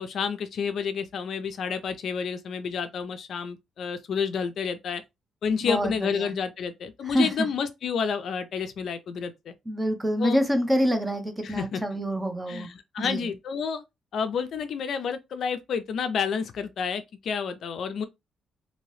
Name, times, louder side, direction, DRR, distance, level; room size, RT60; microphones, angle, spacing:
voice 1, 0.0-5.0 5.4-9.5 10.2-10.4 11.4-12.0 12.5-13.8 14.1-18.0, left 6 dB, 55° left, 0.4 m, -30 dB
voice 2, 5.6-6.3 7.0-7.5 9.7-12.7 13.0-13.3, equal, 10° right, 0.6 m, -26 dB
2.8 x 2.7 x 3.0 m
cardioid pair, 160°, 0 cm